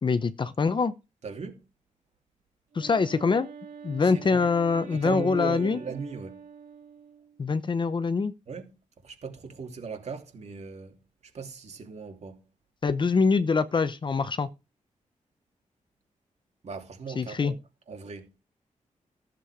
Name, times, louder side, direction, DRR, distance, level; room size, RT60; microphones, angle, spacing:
voice 1, 0.0-0.9 2.7-3.5 3.8-5.8 7.4-8.3 12.8-14.5 17.2-17.5, left 4 dB, 35° left, 0.8 m, -24 dB
voice 2, 1.2-1.6 4.0-4.4 4.9-6.4 8.5-8.8 9.0-11.0 11.3-12.5 16.6-17.6 17.9-18.3, right 4 dB, 55° right, 2.9 m, -38 dB
Wind instrument woodwind instrument, 2.7-7.4, right 6 dB, 80° right, 3.1 m, -46 dB
14.5 x 7.7 x 5.0 m
wide cardioid pair, 175°, 13 cm